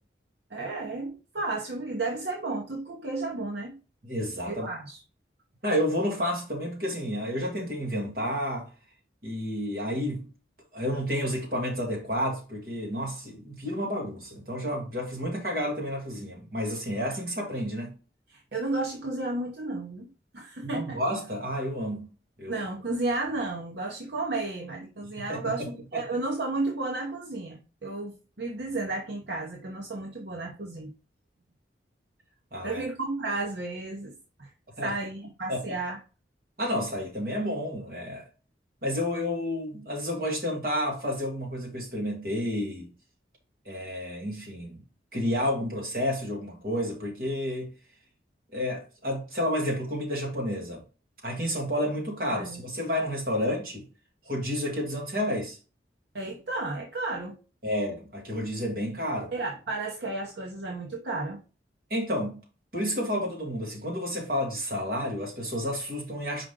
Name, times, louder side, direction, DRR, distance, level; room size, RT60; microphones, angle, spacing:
voice 1, 0.5-3.8 4.4-5.0 18.3-20.1 20.3-21.0 22.4-25.6 25.9-30.9 32.6-34.5 34.8-36.0 52.3-52.6 56.1-57.4 59.3-61.4, right 2 dB, 70° right, 0.9 m, -33 dB
voice 2, 4.0-4.7 5.6-8.7 9.2-10.2 10.7-17.9 20.6-22.1 22.4-22.6 25.2-25.5 32.5-32.8 34.8-34.9 35.5-35.6 36.6-38.2 38.8-42.9 43.7-44.8 45.1-47.7 48.5-50.8 51.2-53.9 54.3-55.6 57.6-59.3 61.9-62.4 62.7-66.5, equal, 50° right, 2.3 m, -30 dB
5.2 x 4.9 x 3.7 m
head